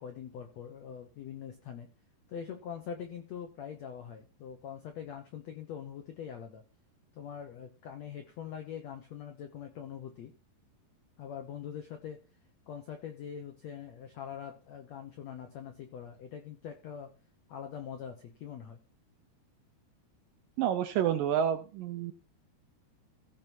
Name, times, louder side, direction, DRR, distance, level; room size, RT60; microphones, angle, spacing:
voice 1, 0.0-1.9 2.3-6.6 7.1-10.3 11.2-12.2 12.7-17.1 17.5-18.8, left 8 dB, 75° left, 6 dB, 1.5 m, -43 dB
voice 2, 20.6-22.1, right 9 dB, 75° right, 8 dB, 2.1 m, -29 dB
16.0 x 5.3 x 4.6 m, 0.34 s
omnidirectional pair, 4.6 m